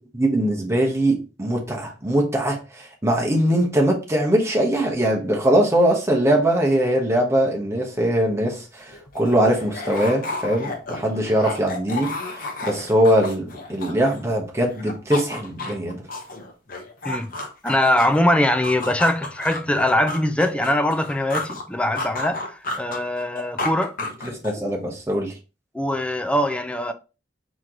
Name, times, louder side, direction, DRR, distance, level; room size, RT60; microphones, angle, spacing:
voice 1, 0.1-16.0 24.2-25.3, right 1 dB, 15° right, 1.1 m, -21 dB
sound 1, 8.6-8.7 8.9-14.4 14.7-18.2 18.6-21.6 22.0-24.7, left 2 dB, 50° left, 0.9 m, -32 dB
voice 2, 17.6-24.0 25.7-26.9, left 1 dB, 5° left, 0.4 m, -22 dB
4.3 x 3.1 x 3.8 m
head